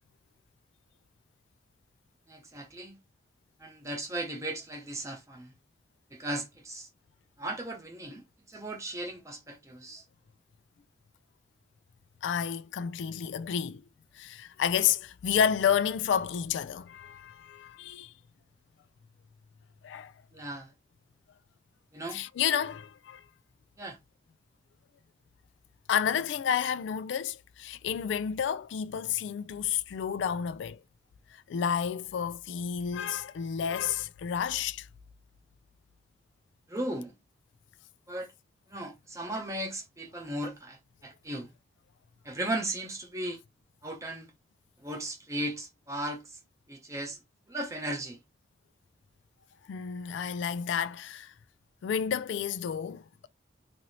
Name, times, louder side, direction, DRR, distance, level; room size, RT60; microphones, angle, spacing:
voice 1, 2.3-3.0 3.6-5.5 6.1-6.9 7.4-10.0 20.3-20.7 21.9-22.2 23.8-24.0 36.7-37.1 38.1-38.3 38.7-41.5 42.2-43.4 43.8-44.3 44.8-46.2 46.7-47.2 47.5-48.2, right 1 dB, 15° right, 0.8 m, -36 dB
voice 2, 12.2-13.8 14.1-18.1 19.8-20.1 22.1-23.3 25.9-30.8 31.3-34.9 49.7-51.3 51.8-53.3, left 8 dB, 80° left, 0.3 m, -30 dB
2.7 x 2.6 x 3.1 m
head